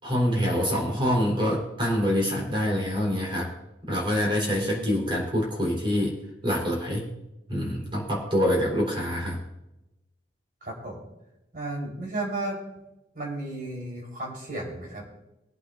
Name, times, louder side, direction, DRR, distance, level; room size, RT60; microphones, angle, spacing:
voice 1, 0.0-3.5 3.9-7.1 7.5-9.4, equal, 30° right, -3 dB, 4.1 m, -26 dB
voice 2, 4.3-5.0 8.9-9.0 10.6-11.0 11.5-12.6 13.1-15.0, right 2 dB, 50° right, -2 dB, 4.3 m, -34 dB
23.5 x 8.6 x 2.6 m, 0.94 s
head